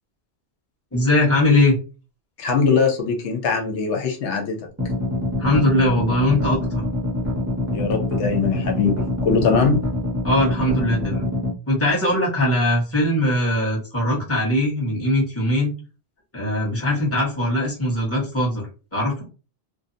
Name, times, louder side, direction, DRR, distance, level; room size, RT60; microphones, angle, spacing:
voice 1, 0.9-1.8 5.4-6.8 10.2-11.3 11.7-15.7 16.3-18.7 18.9-19.2, left 1 dB, 15° left, -5 dB, 1.0 m, -20 dB
voice 2, 2.4-4.6 7.7-9.8, left 5 dB, 85° left, 3 dB, 0.9 m, -21 dB
sound 1, 4.8-11.5, left 2 dB, 20° right, 0.5 m, -25 dB
2.6 x 2.1 x 2.5 m, 0.33 s
omnidirectional pair, 1.2 m